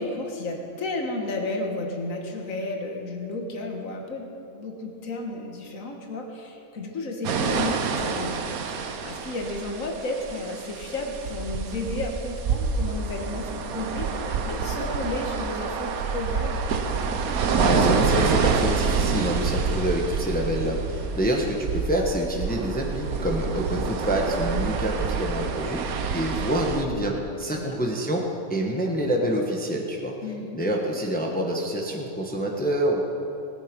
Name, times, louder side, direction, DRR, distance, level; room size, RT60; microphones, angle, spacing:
voice 1, 0.0-4.3 4.5-16.6 27.5-27.8 30.2-30.6, left 2 dB, 65° left, 2 dB, 1.8 m, -33 dB
sound 1, 7.2-26.9, right 5 dB, 85° right, 1.3 m, -27 dB
voice 2, 17.5-25.9 26.1-28.2 28.5-30.1 30.5-33.0, right 1 dB, 5° left, 0 dB, 1.1 m, -27 dB
19.5 x 8.9 x 5.2 m, 2.8 s
omnidirectional pair, 1.5 m